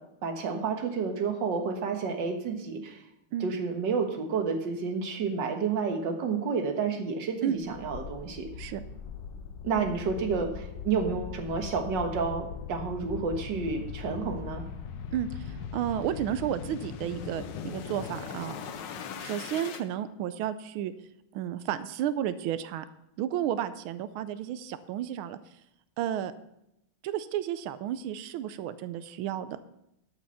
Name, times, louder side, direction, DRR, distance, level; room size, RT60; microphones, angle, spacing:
voice 1, 0.2-3.0 3.4-8.5 9.6-14.6, right 5 dB, 60° right, 4 dB, 2.0 m, -30 dB
sound 1, 7.6-19.8, left 7 dB, 65° left, 1.4 m, -40 dB
voice 2, 15.1-18.6 19.2-20.9 21.3-22.8 23.2-25.4 26.0-26.3 27.0-29.6, right 10 dB, 80° right, 13 dB, 1.5 m, -32 dB
13.5 x 5.9 x 5.7 m, 0.83 s
omnidirectional pair, 2.3 m